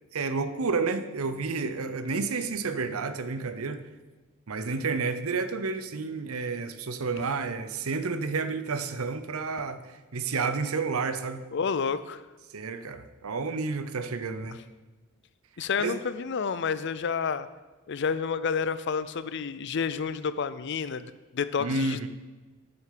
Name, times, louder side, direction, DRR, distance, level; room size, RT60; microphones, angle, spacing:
voice 1, 0.1-3.8 4.5-11.4 12.5-14.6 15.8-16.0 21.6-22.1, right 4 dB, 85° right, 11 dB, 0.7 m, -30 dB
voice 2, 11.5-12.2 15.6-17.5 17.9-22.1, left 6 dB, 55° left, 14 dB, 0.4 m, -30 dB
9.1 x 6.3 x 6.7 m, 1.2 s
head